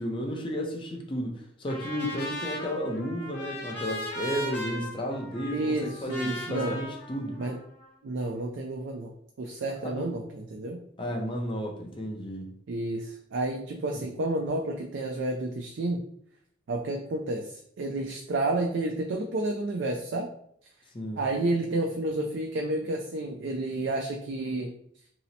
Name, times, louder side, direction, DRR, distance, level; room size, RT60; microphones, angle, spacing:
voice 1, 0.0-7.4 9.8-10.1 11.0-12.6 13.9-14.1 20.9-21.2, equal, 25° left, 0.5 m, -33 dB
Trumpet, 1.7-7.9, equal, 55° left, 1.1 m, -38 dB
voice 2, 5.5-6.8 7.4-7.6 8.0-10.8 12.7-16.0 16.7-20.3 21.2-24.7, right 2 dB, 65° right, 0.4 m, -30 dB
2.8 x 2.0 x 3.9 m
head